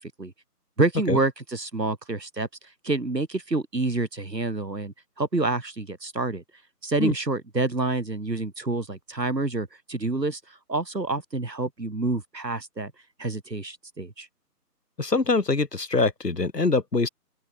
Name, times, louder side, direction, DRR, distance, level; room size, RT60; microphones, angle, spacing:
voice 1, 0.8-2.5 2.8-6.4 6.8-10.4 10.7-12.9 13.2-14.3, right 2 dB, 85° right, 6.4 m, -28 dB
voice 2, 15.0-17.1, left 3 dB, 80° left, 4.0 m, -24 dB
open air
figure-of-eight pair, 165°, 48 cm